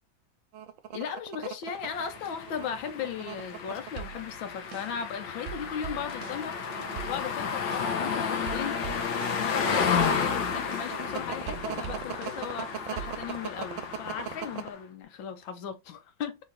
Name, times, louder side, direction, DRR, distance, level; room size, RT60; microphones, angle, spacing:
sound 1, 0.5-3.9 4.7-5.2 5.5-5.6 6.4-8.1 8.5-14.7, right 10 dB, 85° right, 1.4 m, -38 dB
voice 1, 0.9-6.6 7.1-9.0 9.3-16.4, left 7 dB, 90° left, 1.6 m, -37 dB
sound 2, 1.8-14.8, left 6 dB, 75° left, 1.5 m, -32 dB
sound 3, 4.0-5.1 5.5-8.1 8.5-9.6 9.9-12.6 13.0-13.6, right 9 dB, 60° right, 0.8 m, -43 dB
4.0 x 3.0 x 4.1 m
omnidirectional pair, 2.1 m